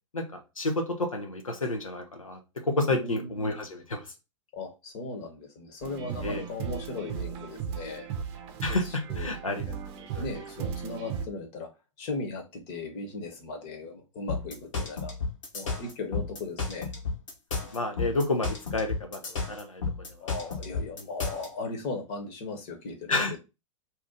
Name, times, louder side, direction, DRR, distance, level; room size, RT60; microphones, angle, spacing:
voice 1, 0.1-4.0 6.2-6.4 8.6-10.2 17.7-19.8 23.1-23.4, left 2 dB, 85° left, 0.8 m, -30 dB
voice 2, 2.9-3.6 4.5-8.1 8.7-9.3 10.1-11.7 12.0-15.1 15.5-16.9 20.2-23.4, left 3 dB, 45° left, 1.1 m, -37 dB
sound 1, 5.8-11.3, right 7 dB, 45° right, 0.6 m, -36 dB
sound 2, 14.3-21.5, left 4 dB, 70° left, 1.3 m, -32 dB
2.8 x 2.4 x 3.7 m
figure-of-eight pair, 100°, 17 cm